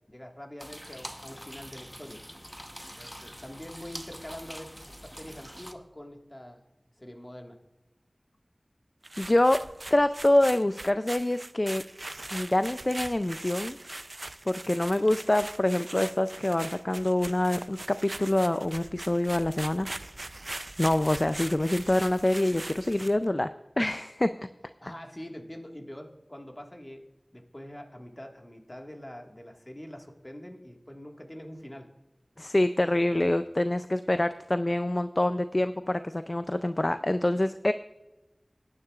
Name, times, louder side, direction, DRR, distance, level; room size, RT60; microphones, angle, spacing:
voice 1, 0.1-2.2 3.0-4.8 5.0-6.6 7.0-7.6 24.8-27.0 27.3-31.9, equal, 30° left, 3 dB, 1.6 m, -44 dB
sound 1, 0.6-5.7, equal, ahead, 0.9 m, -44 dB
sound 2, 9.0-23.2, right 2 dB, 55° right, 0.4 m, -41 dB
voice 2, 9.2-11.8 12.3-13.8 14.5-19.9 20.8-23.5 23.8-24.3 32.4-37.7, left 1 dB, 45° left, 11 dB, 0.3 m, -26 dB
18.5 x 9.7 x 2.4 m, 1.0 s
wide cardioid pair, 40°, 0 cm